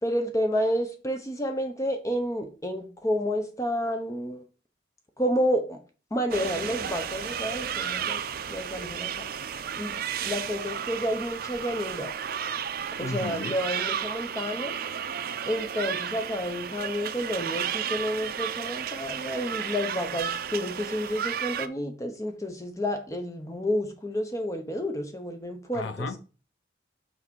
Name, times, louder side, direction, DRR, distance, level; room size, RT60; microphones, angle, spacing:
voice 1, 0.0-4.4 5.2-5.8 6.1-8.2 8.5-9.2 9.7-10.0 10.2-12.1 13.0-14.7 15.4-26.1, equal, 15° left, 0.8 m, -30 dB
sound 1, 6.3-21.7, right 8 dB, 55° right, 0.5 m, -33 dB
voice 2, 13.0-13.6 25.7-26.2, left 3 dB, 90° left, 0.7 m, -34 dB
6.0 x 4.0 x 6.2 m
head